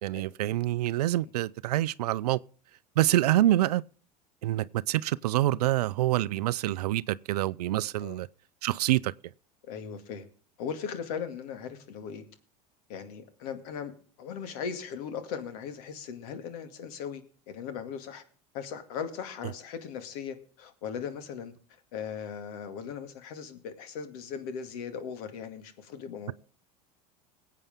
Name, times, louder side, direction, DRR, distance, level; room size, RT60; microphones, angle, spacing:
voice 1, 0.0-2.4 3.0-3.8 4.4-8.3 8.6-9.1, right 15 dB, 80° right, 0.5 m, -26 dB
voice 2, 9.6-10.3 10.6-12.2 12.9-13.9 14.2-18.2 18.5-21.5 21.9-26.3, left 7 dB, 70° left, 2.3 m, -38 dB
21.0 x 8.4 x 3.6 m
hypercardioid pair, 90°, 20 cm